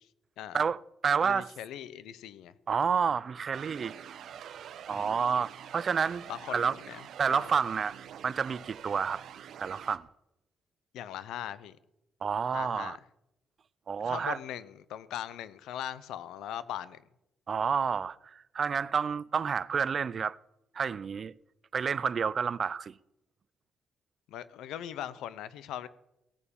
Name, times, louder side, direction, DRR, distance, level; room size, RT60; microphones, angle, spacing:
voice 1, 0.5-1.5 2.7-6.7 7.2-8.0 8.2-9.2 9.6-10.1 12.2-13.0 13.9-14.4 17.5-20.4 20.7-21.3 21.7-23.0, right 6 dB, 45° right, 0.4 m, -30 dB
voice 2, 1.2-2.5 4.9-5.2 6.3-7.0 7.3-7.5 10.9-11.8 12.5-13.0 14.0-17.0 24.3-25.9, left 11 dB, 85° left, 0.7 m, -40 dB
sound 1, 3.5-10.0, right 9 dB, 70° right, 0.9 m, -46 dB
17.0 x 6.9 x 7.0 m
cardioid pair, 90°, 0 cm